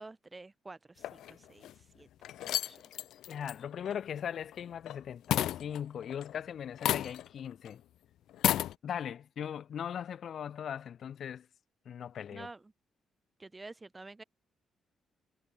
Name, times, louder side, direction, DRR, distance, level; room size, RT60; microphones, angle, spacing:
voice 1, 0.0-2.1 2.4-2.8 12.3-12.7 13.4-14.2, right 3 dB, 20° right, 5.6 m, -49 dB
sound 1, 1.0-1.7 2.2-5.0 5.3-6.4 6.8-7.4 7.7-7.8 8.3-8.7, left 12 dB, 80° left, 1.1 m, -32 dB
voice 2, 3.3-7.8 8.8-11.5 11.8-12.5, left 8 dB, 60° left, 2.7 m, -39 dB
cardioid pair, 90°, 0 cm